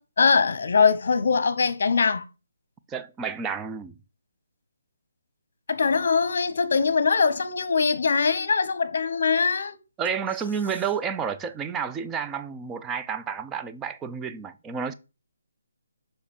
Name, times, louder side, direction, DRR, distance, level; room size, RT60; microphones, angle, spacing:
voice 1, 0.2-2.2 5.7-9.8, left 5 dB, 55° left, 1.0 m, -22 dB
voice 2, 2.9-3.9 10.0-14.9, right 6 dB, 10° right, 0.4 m, -30 dB
5.0 x 4.8 x 5.4 m
hypercardioid pair, 160°, 0 cm